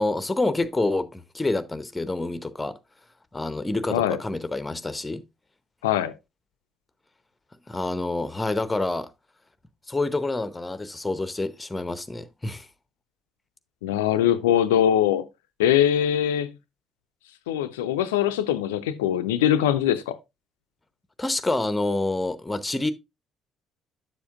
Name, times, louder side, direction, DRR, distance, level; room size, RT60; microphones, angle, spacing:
voice 1, 0.0-2.8 3.3-5.2 7.7-9.1 9.9-12.7 21.2-22.9, left 2 dB, 15° left, 0.8 m, -27 dB
voice 2, 5.8-6.1 13.8-15.3 15.6-16.5 17.5-20.2, left 10 dB, 75° left, 0.4 m, -22 dB
7.9 x 7.1 x 2.4 m
figure-of-eight pair, 50°, 0 cm